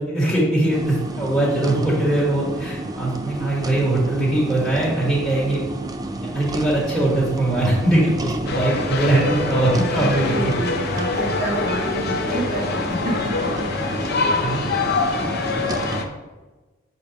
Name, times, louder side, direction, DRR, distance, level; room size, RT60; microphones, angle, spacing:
voice 1, 0.0-5.6 6.2-10.5 14.4-14.6, right 1 dB, 5° left, -7 dB, 1.5 m, -21 dB
sound 1, 0.7-16.0, right 2 dB, 20° right, 0.3 m, -31 dB
sound 2, 8.5-16.1, left 4 dB, 50° left, 0.6 m, -25 dB
voice 2, 9.9-13.5 13.8-14.3 14.8-15.0, right 1 dB, 40° right, -3 dB, 1.5 m, -29 dB
6.9 x 2.9 x 5.3 m, 1.2 s
head